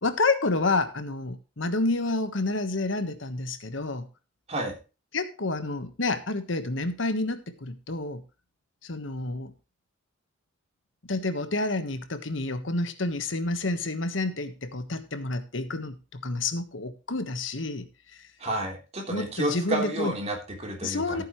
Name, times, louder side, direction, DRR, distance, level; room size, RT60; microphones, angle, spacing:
voice 1, 0.0-4.1 5.1-8.2 8.8-9.5 11.1-18.2 19.1-20.1 20.8-21.2, left 2 dB, 70° left, 1.4 m, -29 dB
voice 2, 18.4-21.2, right 1 dB, 35° right, 3.6 m, -30 dB
15.0 x 9.1 x 3.1 m
head